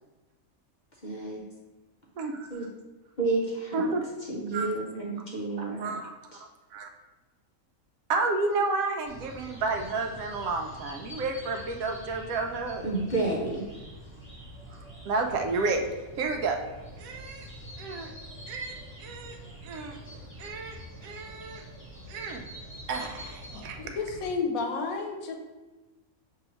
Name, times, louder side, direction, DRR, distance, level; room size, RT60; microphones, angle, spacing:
voice 1, 1.0-1.4 2.5-2.7 3.2-3.9 4.3-6.0 6.3-6.4 12.8-13.6, right 3 dB, 45° left, -3 dB, 0.6 m, -30 dB
voice 2, 2.2-2.7 3.7-4.0 4.5-4.7 5.6-6.1 6.7-6.9 8.1-12.8 14.7-14.8 15.1-15.9 16.2-16.6 17.0-17.5 17.8-18.1 18.5-18.7 19.0-19.4 19.6-20.0 20.4-20.8 21.0-21.6 22.1-22.4 22.9-23.8, right 3 dB, 75° right, 4 dB, 1.0 m, -31 dB
sound 1, 9.0-24.3, equal, 10° left, 1.2 m, -45 dB
voice 3, 23.5-25.4, left 4 dB, 75° left, 3 dB, 1.1 m, -32 dB
6.3 x 2.7 x 3.0 m, 1.2 s
omnidirectional pair, 1.5 m